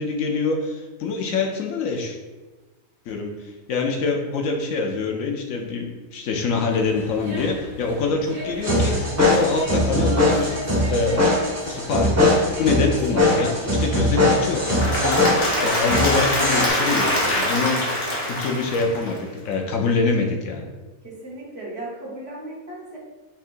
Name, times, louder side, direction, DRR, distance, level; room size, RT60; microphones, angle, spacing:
voice 1, 0.0-2.2 3.1-11.3 11.6-15.3 15.6-17.9 18.3-20.7, left 4 dB, 75° left, 2 dB, 1.0 m, -25 dB
sound 1, 6.7-16.4, left 1 dB, 75° right, 1.9 m, -37 dB
sound 2, 8.6-16.6, left 1 dB, 15° right, 0.7 m, -21 dB
Applause / Crowd, 14.5-19.5, left 1 dB, 60° left, 1.5 m, -24 dB
voice 2, 21.0-23.0, right 1 dB, 50° right, -5 dB, 1.3 m, -36 dB
5.6 x 3.5 x 2.5 m, 1.2 s
omnidirectional pair, 1.5 m